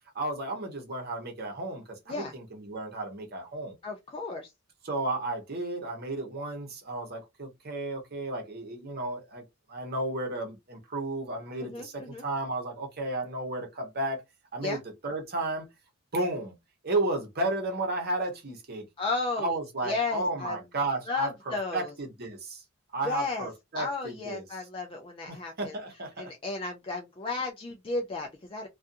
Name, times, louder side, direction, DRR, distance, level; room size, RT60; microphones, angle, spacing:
voice 1, 0.1-3.7 4.8-9.4 9.7-14.2 14.5-14.8 15.0-15.7 16.1-16.5 16.8-18.8 19.4-22.6 22.9-24.4 25.3-26.3, right 2 dB, 45° right, 0.9 m, -33 dB
voice 2, 3.8-4.5 11.6-12.2 14.6-14.8 19.0-19.5 19.8-20.6 21.1-21.9 23.0-23.5 23.7-25.8 26.2-28.7, left 3 dB, 25° left, 0.3 m, -33 dB
2.5 x 2.3 x 2.5 m
head